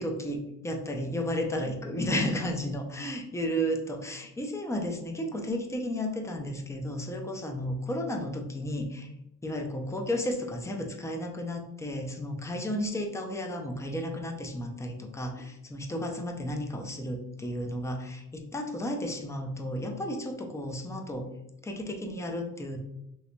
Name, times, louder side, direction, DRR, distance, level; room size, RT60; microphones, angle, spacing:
voice 1, 0.0-9.1 9.4-21.3 21.6-22.8, equal, 10° left, 3 dB, 0.4 m, -33 dB
3.3 x 3.1 x 2.5 m, 0.85 s
wide cardioid pair, 150°, 31 cm